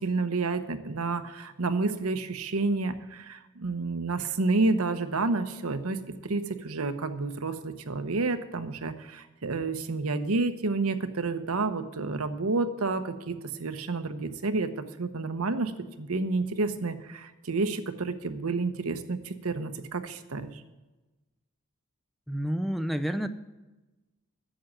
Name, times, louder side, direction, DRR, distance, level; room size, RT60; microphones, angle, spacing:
voice 1, 0.0-15.7 16.0-20.6, right 3 dB, 75° right, 10 dB, 0.9 m, -30 dB
voice 2, 22.3-23.3, equal, ahead, 9 dB, 0.5 m, -29 dB
10.0 x 7.3 x 9.0 m, 1.1 s
head